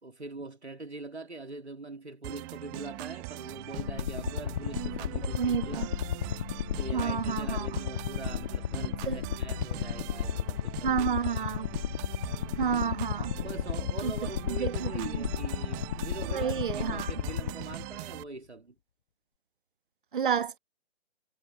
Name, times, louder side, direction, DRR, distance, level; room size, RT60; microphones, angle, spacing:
voice 1, 0.0-5.9 6.8-11.5 13.4-18.7, right 2 dB, 80° right, 2.4 m, -43 dB
sound 1, 2.2-18.2, right 30 dB, 20° right, 1.3 m, -41 dB
sound 2, 3.8-18.1, left 10 dB, 35° left, 1.7 m, -34 dB
voice 2, 5.3-5.9 6.9-7.7 9.1-9.2 10.8-11.7 12.6-13.3 14.0-14.1 14.6-15.2 16.3-17.1 20.1-20.6, right 7 dB, 50° right, 1.2 m, -30 dB
figure-of-eight pair, 135°, 33 cm